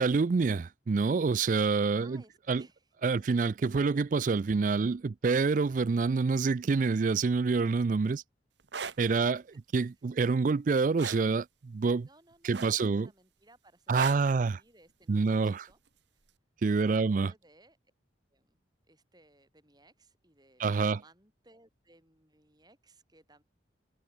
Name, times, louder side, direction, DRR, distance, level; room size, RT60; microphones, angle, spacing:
voice 1, 0.0-2.2 2.5-2.6 3.0-8.2 9.0-9.4 9.7-12.1 12.4-13.1 13.9-14.6 15.1-15.6 16.6-17.3 20.6-21.0, right 4 dB, 45° right, 0.3 m, -27 dB
voice 2, 1.9-2.9 8.8-9.2 9.5-9.6 12.0-15.8 16.8-17.8 18.3-23.4, right 2 dB, 20° right, 7.8 m, -61 dB
sound 1, 8.6-9.0 11.0-11.3 12.5-13.0 13.9-14.3 15.7-15.9, right 5 dB, 70° right, 1.3 m, -36 dB
head